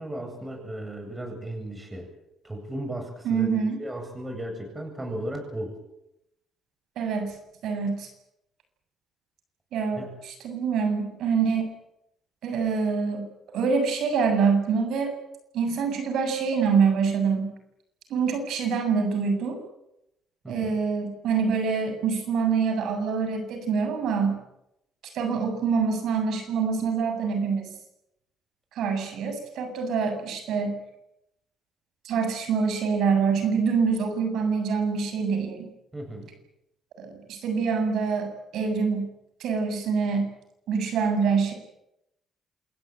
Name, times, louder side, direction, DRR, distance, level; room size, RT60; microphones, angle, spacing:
voice 1, 0.0-2.1 2.4-5.8 9.9-10.1 20.4-20.8 35.9-36.3, right 1 dB, 20° right, 4 dB, 8.0 m, -35 dB
voice 2, 3.2-3.8 7.0-7.3 7.6-8.1 9.7-11.7 12.4-13.3 13.5-15.2 15.5-17.5 18.1-19.6 20.5-24.4 25.1-27.7 28.7-30.7 32.0-35.7 37.0-39.1 39.4-40.3 40.7-41.5, right 5 dB, 80° right, 7 dB, 7.6 m, -25 dB
28.0 x 17.5 x 9.1 m, 0.84 s
cardioid pair, 90°, 0 cm